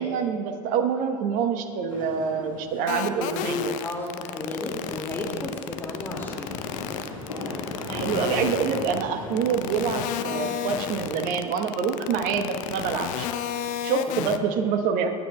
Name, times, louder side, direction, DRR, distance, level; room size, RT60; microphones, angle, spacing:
voice 1, 0.0-3.8 7.8-13.3 13.8-15.1, right 6 dB, 55° right, 7 dB, 1.1 m, -26 dB
sound 1, 1.9-3.4 3.7-3.8 5.2-11.3, left 2 dB, 90° left, 1.8 m, -38 dB
sound 2, 2.9-9.0 9.4-14.4, left 10 dB, 50° left, 0.7 m, -31 dB
voice 2, 3.8-6.6 14.1-14.4, left 1 dB, 15° left, 0 dB, 2.2 m, -34 dB
21.0 x 9.1 x 2.3 m, 2.2 s
hypercardioid pair, 80°, 17 cm